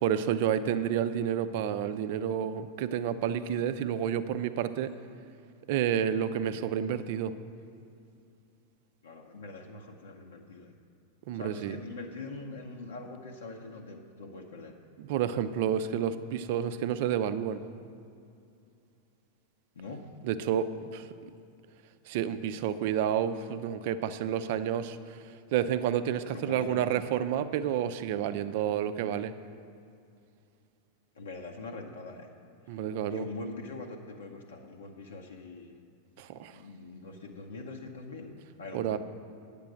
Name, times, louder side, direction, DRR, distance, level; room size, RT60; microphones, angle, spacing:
voice 1, 0.0-4.9 5.7-7.3 11.3-11.8 15.0-17.6 20.2-21.1 22.1-25.2 25.5-29.3 32.7-33.3 36.2-36.5 38.7-39.0, right 9 dB, 50° right, 11 dB, 0.5 m, -30 dB
voice 2, 9.0-10.7 11.3-14.7 19.8-20.0 26.3-26.9 31.2-32.3 33.1-35.7 36.5-38.3 38.6-39.0, left 3 dB, 65° left, 1 dB, 0.8 m, -43 dB
9.2 x 6.7 x 6.3 m, 2.5 s
figure-of-eight pair, 90°, 0 cm